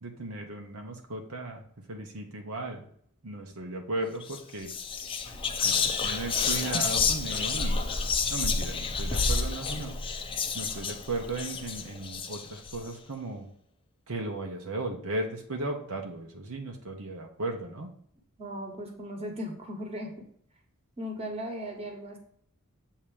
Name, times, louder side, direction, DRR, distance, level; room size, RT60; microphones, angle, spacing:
voice 1, 0.0-2.8 3.2-4.7 5.3-7.8 8.3-9.9 10.5-13.5 14.1-17.9, right 2 dB, 80° right, 3 dB, 0.9 m, -36 dB
Whispering, 4.2-4.4 4.7-12.8, left 5 dB, 25° left, 0.5 m, -29 dB
voice 2, 18.4-20.1 21.0-22.2, equal, 25° right, 2 dB, 1.3 m, -37 dB
7.2 x 2.9 x 4.9 m, 0.63 s
head